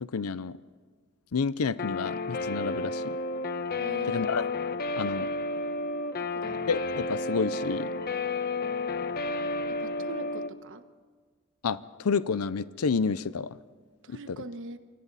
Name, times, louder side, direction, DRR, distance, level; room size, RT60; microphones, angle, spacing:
voice 1, 0.0-0.6 1.3-3.1 4.1-4.5 5.0-5.3 6.7-7.9 11.6-13.6 14.1-14.4, left 5 dB, 75° left, 16 dB, 0.6 m, -30 dB
Guitar, 1.8-10.5, left 3 dB, 45° left, 0.9 m, -31 dB
voice 2, 3.8-4.3 6.2-6.7 9.7-10.8 14.0-14.8, right 2 dB, 60° right, 10 dB, 1.2 m, -42 dB
29.0 x 24.0 x 4.1 m, 1.5 s
head